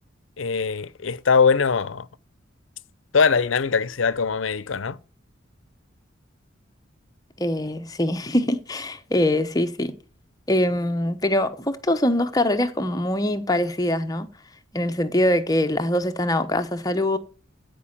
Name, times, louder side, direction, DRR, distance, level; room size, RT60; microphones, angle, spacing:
voice 1, 0.4-2.1 3.1-5.0, left 5 dB, 85° left, 0.6 m, -21 dB
voice 2, 7.4-10.0 10.5-14.3 14.7-17.2, left 1 dB, 20° left, 0.9 m, -23 dB
15.5 x 5.3 x 7.4 m
head